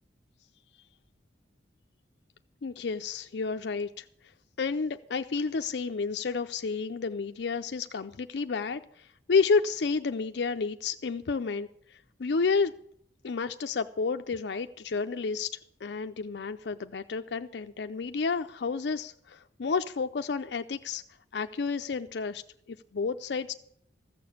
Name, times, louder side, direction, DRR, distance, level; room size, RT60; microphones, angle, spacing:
voice 1, 2.6-4.0 4.6-12.7 13.2-21.0 21.3-22.4 22.7-23.5, left 4 dB, 65° left, 8 dB, 0.5 m, -30 dB
14.5 x 6.9 x 8.5 m, 0.70 s
head